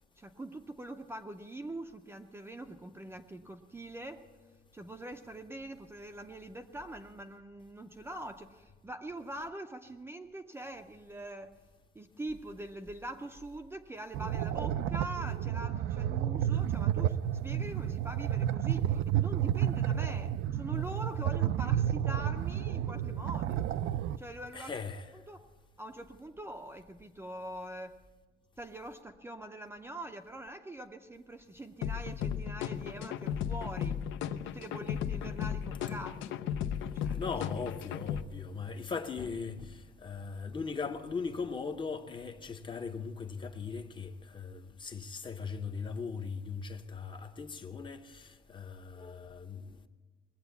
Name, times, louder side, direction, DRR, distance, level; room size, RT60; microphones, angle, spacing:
voice 1, 0.2-4.2 4.7-11.5 11.9-17.2 17.4-23.7 24.2-24.7 25.3-25.5 25.8-28.0 28.6-34.0 34.3-36.4 36.9-37.4, right 1 dB, 10° right, 0.5 m, -43 dB
sound 1, 14.1-24.2, right 10 dB, 80° right, 0.5 m, -31 dB
voice 2, 24.5-25.1 37.1-49.8, left 5 dB, 25° left, 0.7 m, -39 dB
sound 2, 31.8-38.2, left 8 dB, 75° left, 0.6 m, -35 dB
20.0 x 8.0 x 8.2 m
cardioid pair, 160°, 20 cm